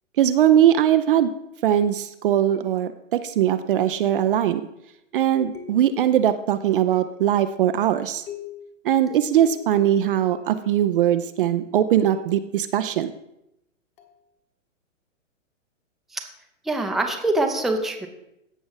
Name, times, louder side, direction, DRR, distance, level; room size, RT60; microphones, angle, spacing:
voice 1, 0.2-1.3 1.6-4.6 5.1-8.2 8.8-13.1, right 10 dB, 45° right, 11 dB, 0.5 m, -20 dB
sound 1, 2.5-3.1 4.3-4.7 5.5-6.2 6.9-7.4 8.3-8.7 9.4-11.0 12.1-12.5 14.0-14.2, left 10 dB, 25° left, 1.3 m, -43 dB
voice 2, 16.6-18.1, right 2 dB, ahead, 3 dB, 0.6 m, -24 dB
15.0 x 5.9 x 3.9 m, 0.83 s
figure-of-eight pair, 115°, 39 cm